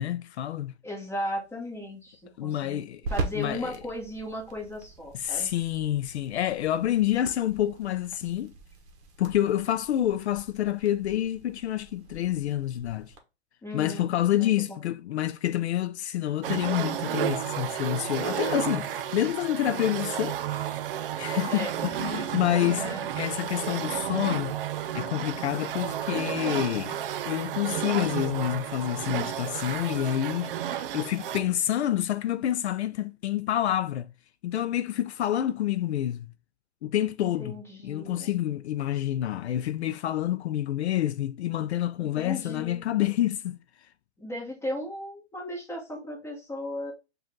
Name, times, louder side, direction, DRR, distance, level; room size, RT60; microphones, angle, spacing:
voice 1, 0.0-0.7 2.4-3.0 3.4-3.8 5.1-8.5 9.2-13.1 13.7-20.7 21.2-24.5 24.9-27.0 27.3-34.1 34.4-36.3 36.8-37.5 37.8-43.6, left 12 dB, 70° left, 0.5 m, -28 dB
voice 2, 0.8-2.8 3.1-5.5 13.6-14.8 21.5-21.7 22.5-23.1 37.2-38.3 42.0-42.8 44.2-46.9, left 1 dB, 10° left, 1.3 m, -36 dB
sound 1, 1.0-13.2, right 3 dB, 35° right, 1.0 m, -42 dB
sound 2, 16.4-31.6, right 10 dB, 55° right, 0.5 m, -32 dB
5.1 x 2.5 x 3.7 m
hypercardioid pair, 145°, 34 cm